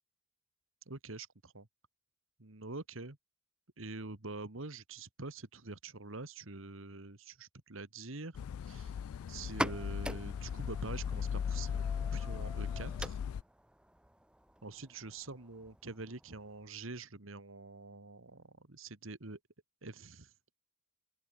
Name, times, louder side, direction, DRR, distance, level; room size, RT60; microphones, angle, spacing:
voice 1, 0.9-1.7 2.4-3.2 3.8-9.0 9.3-11.8 12.1-13.2 14.6-19.4 19.8-20.3, right 3 dB, 70° right, 1.9 m, -45 dB
sound 1, 8.3-13.4, left 7 dB, 90° left, 0.3 m, -38 dB
sound 2, 9.4-16.9, right 1 dB, 5° right, 1.0 m, -45 dB
open air
head